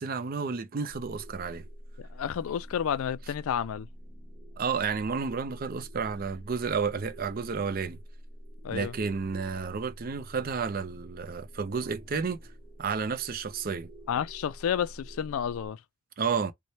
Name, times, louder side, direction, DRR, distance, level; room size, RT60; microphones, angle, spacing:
voice 1, 0.0-1.6 4.6-8.0 8.7-12.4 12.8-13.9 16.2-16.5, right 5 dB, 45° right, 0.4 m, -31 dB
sound 1, 0.9-15.7, equal, 5° right, 0.9 m, -47 dB
voice 2, 2.0-3.9 8.6-8.9 14.1-15.8, left 8 dB, 80° left, 0.3 m, -31 dB
3.2 x 2.1 x 4.0 m
head